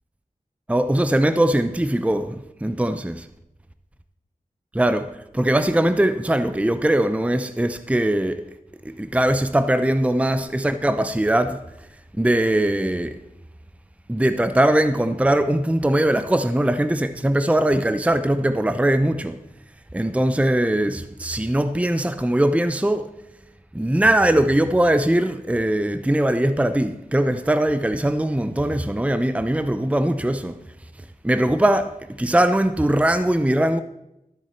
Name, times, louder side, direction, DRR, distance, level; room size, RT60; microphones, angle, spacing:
voice 1, 0.7-3.3 4.7-8.5 8.8-11.6 12.1-13.2 14.1-19.4 19.9-23.1 23.7-30.6 31.0-33.8, right 1 dB, 10° right, 0.6 m, -21 dB
13.0 x 7.3 x 4.4 m
wide cardioid pair, 50°, 15 cm